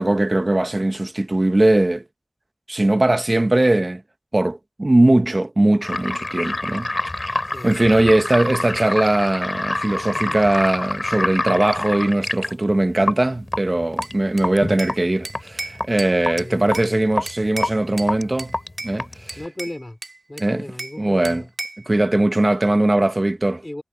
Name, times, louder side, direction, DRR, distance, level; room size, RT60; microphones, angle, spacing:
voice 1, 0.0-2.0 2.7-4.0 4.3-6.9 7.3-18.5 18.8-19.4 20.4-20.6 21.0-21.4 21.9-23.6, right 1 dB, 45° right, 1.3 m, -20 dB
sound 1, 5.8-19.5, left 2 dB, 55° left, 3.1 m, -27 dB
Bell / Glass, 14.0-15.0 15.2-16.9 17.3-18.1 18.4-19.0 19.3-21.0 21.2-21.9, right 3 dB, 85° right, 4.3 m, -34 dB
voice 2, 16.3-17.0 19.4-20.0 20.3-21.5 23.6-23.8, left 1 dB, 35° left, 4.6 m, -36 dB
wide cardioid pair, 40°, 0 cm